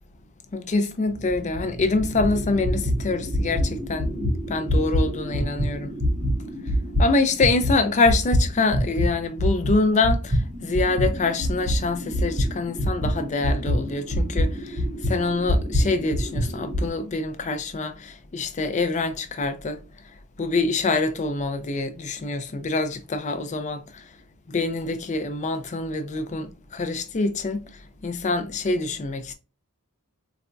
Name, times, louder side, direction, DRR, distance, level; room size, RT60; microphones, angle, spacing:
voice 1, 0.5-5.9 7.0-14.8 15.1-19.8 20.4-24.0 24.5-27.6 28.0-29.3, left 3 dB, 30° left, 0.4 m, -25 dB
sound 1, 1.1-9.1 9.4-16.9, equal, 40° right, 0.8 m, -25 dB
4.0 x 2.2 x 2.4 m
head